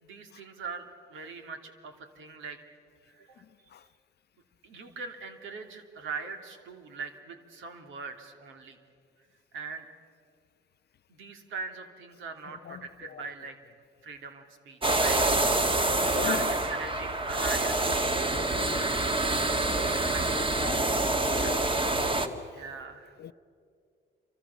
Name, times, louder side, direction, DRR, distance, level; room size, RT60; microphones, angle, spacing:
voice 1, 0.0-2.6 3.1-3.4 4.6-8.8 9.5-9.9 11.1-13.6 14.0-15.2 15.8-17.9 18.3-19.3 19.5-20.5 22.5-23.1, right 4 dB, 80° right, 3.0 m, -41 dB
sound 1, 14.8-22.3, right 2 dB, 25° right, 2.0 m, -26 dB
voice 2, 15.9-16.5 18.4-18.9 20.3-20.9 21.4-21.6 21.9-22.4 23.2-23.3, left 10 dB, 55° left, 0.6 m, -38 dB
28.5 x 25.0 x 7.2 m
cardioid pair, 90°, 20 cm